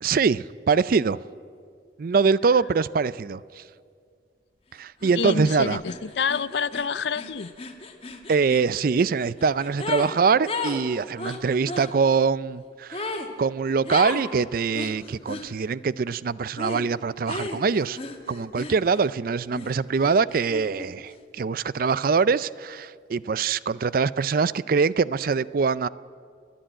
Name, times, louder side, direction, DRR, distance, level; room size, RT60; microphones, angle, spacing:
voice 1, 0.0-1.2 2.0-3.4 4.8-5.8 8.3-18.0 18.3-25.9, right 5 dB, 50° right, 19 dB, 0.4 m, -23 dB
sound 1, 5.0-5.2 5.4-10.1 10.4-11.9 12.9-13.3 13.9-14.3 14.7-15.5 16.6-16.9 17.3-19.1 19.5-20.9, left 3 dB, 30° left, 1.6 m, -35 dB
voice 2, 5.1-7.5, left 5 dB, 75° left, 17 dB, 0.6 m, -28 dB
30.0 x 10.5 x 8.8 m, 2.2 s
head